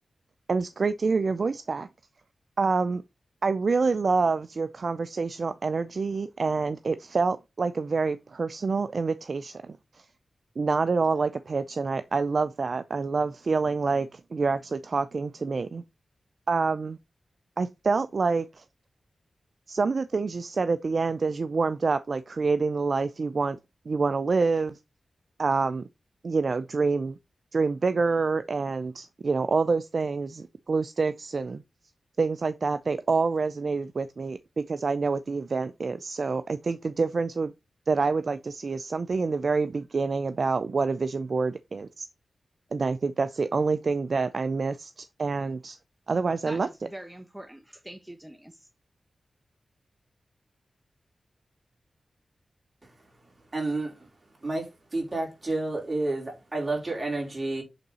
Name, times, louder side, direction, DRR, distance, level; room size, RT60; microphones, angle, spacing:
voice 1, 0.5-1.9 2.6-3.0 3.4-10.1 10.6-15.8 16.5-17.0 17.6-18.6 19.7-23.6 23.9-24.8 25.4-25.8 26.2-27.2 27.5-31.6 32.2-37.5 37.9-42.1 42.7-45.8 46.1-46.7, right 4 dB, 60° right, 0.4 m, -27 dB
voice 2, 46.4-48.7, right 1 dB, 10° right, 1.0 m, -44 dB
voice 3, 53.5-54.1 54.4-57.6, right 2 dB, 35° right, 4.2 m, -30 dB
7.9 x 4.0 x 4.2 m
cardioid pair, 50°, 0 cm